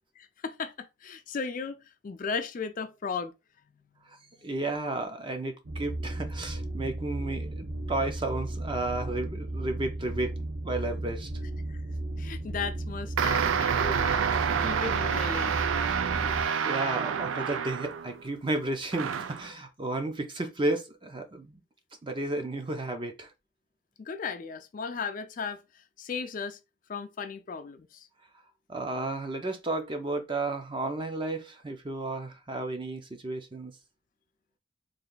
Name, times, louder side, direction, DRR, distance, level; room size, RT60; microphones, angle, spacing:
voice 1, 0.2-3.3 11.7-11.8 12.2-14.3 14.6-15.5 24.0-26.6 26.9-28.1, left 5 dB, 40° left, 0.4 m, -36 dB
voice 2, 4.4-10.4 10.6-11.3 16.4-21.6 22.0-23.3 28.7-33.7, right 2 dB, 25° right, 0.6 m, -33 dB
sound 1, 5.6-16.4, right 1 dB, 60° right, 1.1 m, -35 dB
sound 2, 13.2-18.2 18.9-19.5, right 7 dB, 80° right, 0.4 m, -28 dB
3.2 x 2.6 x 3.9 m
head